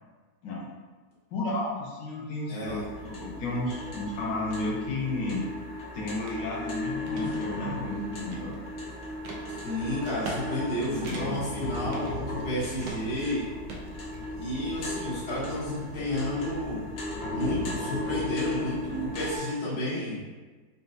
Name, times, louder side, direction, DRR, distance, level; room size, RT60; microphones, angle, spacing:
voice 1, 1.3-2.8 3.0-5.5 5.9-8.5 10.9-11.4, left 2 dB, 85° left, -4 dB, 1.4 m, -32 dB
voice 2, 2.5-2.8 9.5-13.5 14.3-16.9 17.3-20.2, left 1 dB, 40° left, -8 dB, 1.1 m, -31 dB
sound 1, 2.6-19.4, left 2 dB, 55° left, 0.8 m, -36 dB
sound 2, 6.3-6.4 6.8-7.3 7.8-8.7 9.2-9.4 10.0-10.4 10.7-10.8 11.0-11.5 11.9-12.5 12.8-13.2 13.7-14.5, right 3 dB, 90° right, 1.3 m, -40 dB
sound 3, 6.8-7.4 8.3-8.5 9.2-9.3 10.2-11.1, left 2 dB, 15° left, 1.2 m, -51 dB
4.1 x 2.3 x 2.6 m, 1.3 s
omnidirectional pair, 1.9 m